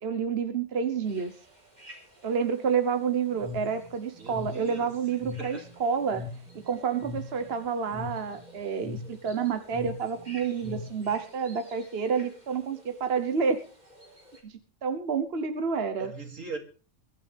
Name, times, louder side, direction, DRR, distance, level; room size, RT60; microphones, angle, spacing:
voice 1, 0.0-1.3 2.2-6.2 6.5-13.6 14.4-14.5 14.8-16.1, right 6 dB, 55° right, 8 dB, 1.3 m, -29 dB
sound 1, 1.0-14.4, equal, 35° right, 4.4 m, -54 dB
sound 2, 3.3-11.2, left 4 dB, 10° right, 3.7 m, -41 dB
voice 2, 4.2-4.9 5.4-5.6 16.0-16.6, right 3 dB, 85° right, 3 dB, 3.3 m, -39 dB
22.5 x 11.5 x 3.5 m, 0.36 s
omnidirectional pair, 1.3 m